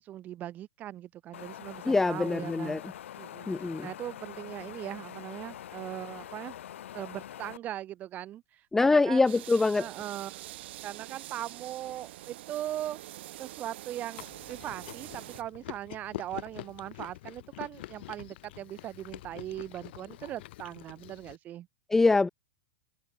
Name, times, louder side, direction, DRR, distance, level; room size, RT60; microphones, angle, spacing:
voice 1, 0.0-2.8 3.1-6.5 6.9-9.4 9.8-10.5 10.8-13.0 13.4-21.7, right 12 dB, 25° right, 2.4 m, -40 dB
Wind, 1.3-7.6, left 11 dB, 85° left, 2.8 m, -44 dB
voice 2, 1.9-2.8 3.5-3.9 8.7-9.9 21.9-22.3, left 3 dB, 5° left, 0.5 m, -24 dB
sound 1, 9.3-15.4, right 15 dB, 60° right, 2.1 m, -45 dB
Chewing mastication, 14.2-21.4, left 17 dB, 55° left, 7.5 m, -45 dB
supercardioid pair, 160°, 7 cm